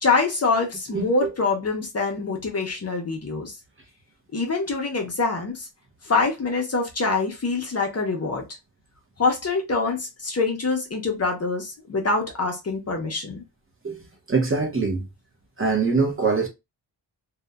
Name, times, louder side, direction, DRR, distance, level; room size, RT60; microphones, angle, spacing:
voice 1, 0.0-3.6 4.3-5.7 6.0-8.4 9.2-13.4, left 3 dB, 35° left, 0.5 m, -25 dB
voice 2, 0.9-1.3 13.8-14.0 14.3-15.0 15.6-16.5, right 4 dB, 30° right, 0.6 m, -23 dB
2.7 x 2.1 x 2.2 m
wide cardioid pair, 160°, 43 cm